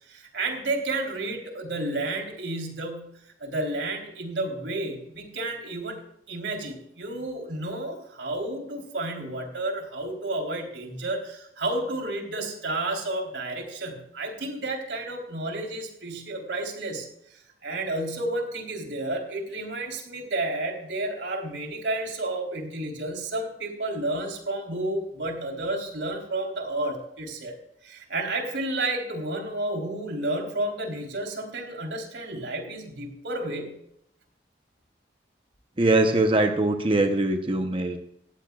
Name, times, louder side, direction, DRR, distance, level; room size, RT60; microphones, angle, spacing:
voice 1, 0.0-6.0 6.3-27.6 27.8-33.8, right 2 dB, 90° right, 2 dB, 3.6 m, -31 dB
voice 2, 35.8-38.0, right 2 dB, 30° right, 5 dB, 0.8 m, -22 dB
19.0 x 14.5 x 2.4 m, 0.76 s
head